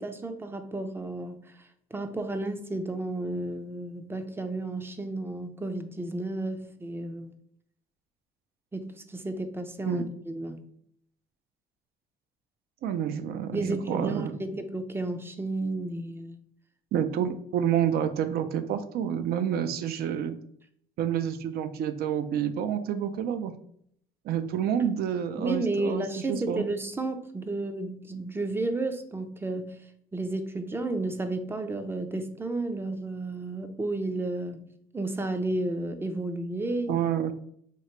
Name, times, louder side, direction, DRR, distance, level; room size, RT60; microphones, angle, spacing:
voice 1, 0.0-1.4 1.9-7.3 8.7-10.6 13.5-16.4 25.4-29.8 30.1-34.6 34.9-36.9, right 2 dB, 15° right, 8 dB, 0.4 m, -32 dB
voice 2, 12.8-14.4 16.9-20.4 21.0-23.5 24.2-26.6 36.9-37.3, right 9 dB, 65° right, 10 dB, 0.5 m, -29 dB
3.0 x 2.8 x 4.4 m, 0.67 s
cardioid pair, 110°, 17 cm